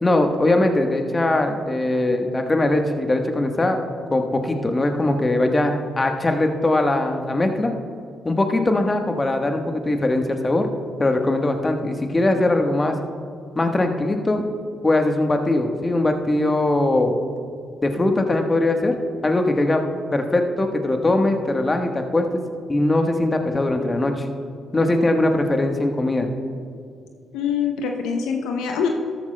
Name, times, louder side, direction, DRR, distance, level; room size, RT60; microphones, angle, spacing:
voice 1, 0.0-3.8 4.1-7.7 8.2-10.7 11.0-12.9 13.5-14.4 14.8-17.1 17.8-18.9 19.2-19.8 20.1-22.4 22.7-24.3 24.7-26.3, left 2 dB, 30° left, 5 dB, 1.2 m, -21 dB
voice 2, 27.3-28.9, left 6 dB, 75° left, 3 dB, 0.6 m, -24 dB
13.5 x 13.5 x 2.2 m, 2.4 s
hypercardioid pair, 40°, 0 cm